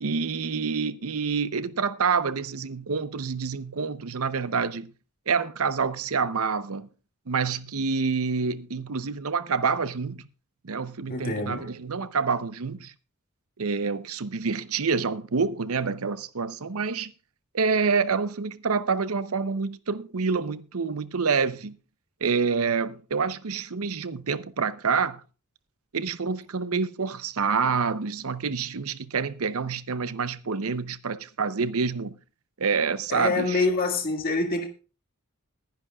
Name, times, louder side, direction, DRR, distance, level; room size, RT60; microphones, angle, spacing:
voice 1, 0.0-4.9 5.3-6.9 7.3-10.2 10.6-12.9 13.6-17.1 17.5-21.8 22.2-25.2 25.9-32.2 32.6-33.7, right 5 dB, 75° right, 0.7 m, -27 dB
voice 2, 11.1-11.7 33.1-34.7, left 3 dB, 45° left, 1.9 m, -26 dB
21.0 x 10.5 x 2.4 m
head